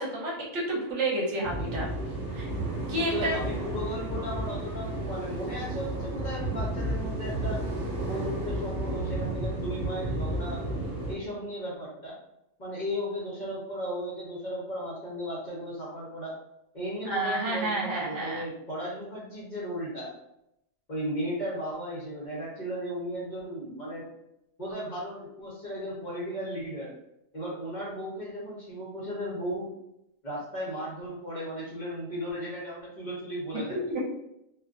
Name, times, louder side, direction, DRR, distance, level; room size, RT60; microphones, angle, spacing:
voice 1, 0.0-1.9 2.3-2.5 2.9-3.4 17.0-18.4 33.5-34.0, right 1 dB, 65° right, -4 dB, 1.0 m, -30 dB
sound 1, 1.4-11.1, right 1 dB, 35° right, 0.9 m, -32 dB
voice 2, 3.0-7.6 8.0-10.6 11.1-12.2 12.6-16.4 16.7-20.1 20.9-24.0 24.6-26.9 27.3-29.7 30.2-33.9, equal, 40° left, -6 dB, 0.8 m, -35 dB
2.4 x 2.4 x 2.4 m, 0.82 s
omnidirectional pair, 1.4 m